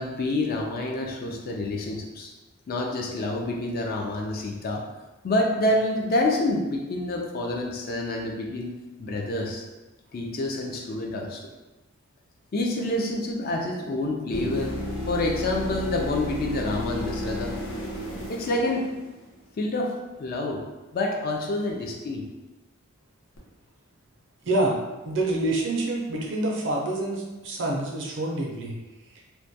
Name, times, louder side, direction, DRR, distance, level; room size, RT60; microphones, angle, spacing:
voice 1, 0.0-2.3 2.7-4.8 5.2-8.7 9.0-9.6 10.1-11.4 12.5-14.7 15.1-17.5 18.3-18.9 19.6-20.6 20.9-22.2, left 2 dB, 45° left, 0 dB, 0.3 m, -27 dB
sound 1, 14.3-19.4 23.4-23.5, left 1 dB, 80° left, 0.7 m, -33 dB
voice 2, 24.4-24.7 25.0-28.7, right 2 dB, 60° right, -1 dB, 0.5 m, -27 dB
2.2 x 2.1 x 2.6 m, 1.1 s
head